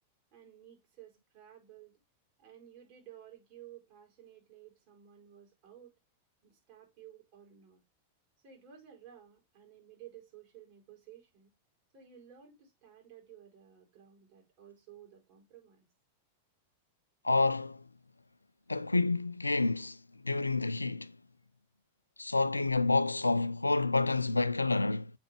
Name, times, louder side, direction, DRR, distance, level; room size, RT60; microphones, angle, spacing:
voice 1, 0.3-2.0 2.4-5.9 6.4-7.8 8.4-11.5 11.9-15.9, right 10 dB, 45° right, 4.5 m, -55 dB
voice 2, 17.2-17.8 18.7-20.0 20.2-21.1 22.2-25.1, left 3 dB, 80° left, 0.3 m, -28 dB
7.8 x 5.5 x 3.4 m
figure-of-eight pair, 90°, 0 cm